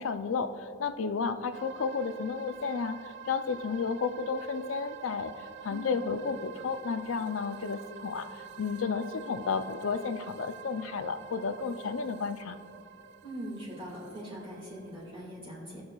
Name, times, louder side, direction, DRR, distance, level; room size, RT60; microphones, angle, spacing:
voice 1, 0.0-12.6, left 5 dB, 80° left, 10 dB, 0.5 m, -32 dB
sound 1, 1.5-15.1, right 7 dB, 60° right, 0.3 m, -48 dB
voice 2, 13.2-15.8, right 1 dB, 25° right, -7 dB, 2.1 m, -41 dB
17.5 x 6.5 x 2.4 m, 2.6 s
head